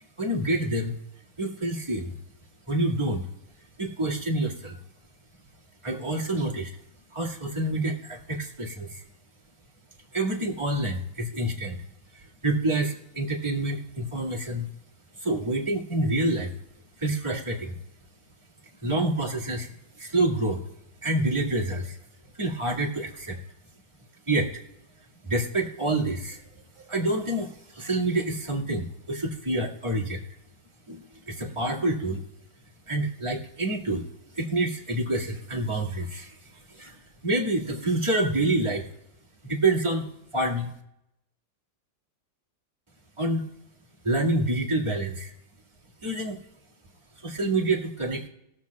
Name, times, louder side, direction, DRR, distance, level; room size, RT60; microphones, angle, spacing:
voice 1, 0.2-0.9 1.4-2.2 2.7-3.3 3.8-4.8 5.8-6.7 7.1-9.0 10.1-11.8 12.1-14.7 15.2-16.5 17.0-17.8 18.8-19.7 20.0-20.6 21.0-22.0 22.3-23.4 24.3-24.5 25.2-26.4 26.7-30.2 30.9-32.2 32.9-34.1 34.3-38.8 39.5-40.1 40.3-40.7 43.2-43.4 44.0-45.3 46.0-46.4 47.2-48.2, right 2 dB, 15° right, -2 dB, 1.7 m, -27 dB
21.0 x 7.5 x 2.3 m, 0.82 s
omnidirectional pair, 2.1 m